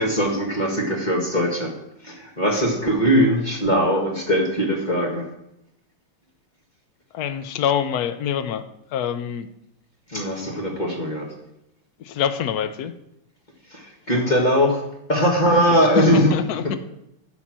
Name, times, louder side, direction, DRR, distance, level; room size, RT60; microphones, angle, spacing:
voice 1, 0.0-1.7 2.0-5.3 10.1-11.3 13.7-14.8 15.1-16.3, equal, 25° left, -1 dB, 1.5 m, -20 dB
voice 2, 7.1-8.6 8.9-9.5 12.0-12.9 15.7-16.8, left 9 dB, 80° left, 10 dB, 0.8 m, -25 dB
11.0 x 4.5 x 7.3 m, 0.81 s
omnidirectional pair, 2.4 m